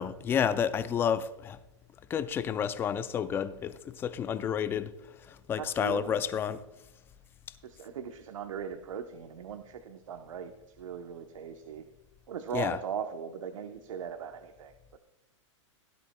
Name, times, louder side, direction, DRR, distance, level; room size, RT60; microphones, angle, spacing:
voice 1, 0.0-1.6 2.1-4.9 5.3-6.6 12.5-12.8, left 8 dB, 15° left, 0.4 m, -30 dB
voice 2, 5.6-6.2 7.6-11.8 12.3-15.0, right 8 dB, 90° right, 0.9 m, -39 dB
17.0 x 10.0 x 2.2 m
hypercardioid pair, 150°, 16 cm